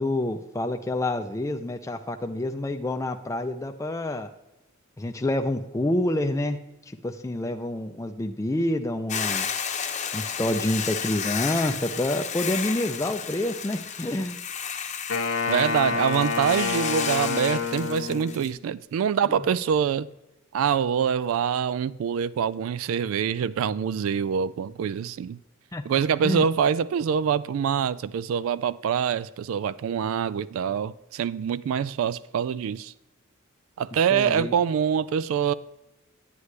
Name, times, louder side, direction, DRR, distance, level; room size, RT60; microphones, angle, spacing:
voice 1, 0.0-4.3 5.0-6.6 6.9-9.5 10.1-14.4 25.7-26.5 34.1-34.5, left 1 dB, 15° left, 0.4 m, -28 dB
Hiss / Boiling, 9.1-18.5, left 7 dB, 35° left, 0.8 m, -32 dB
Wind instrument woodwind instrument, 15.1-18.6, left 5 dB, 85° left, 1.3 m, -28 dB
voice 2, 15.5-20.1 20.5-25.4 25.8-32.9 33.8-35.5, right 7 dB, 75° right, 0.3 m, -25 dB
9.7 x 9.4 x 3.2 m
head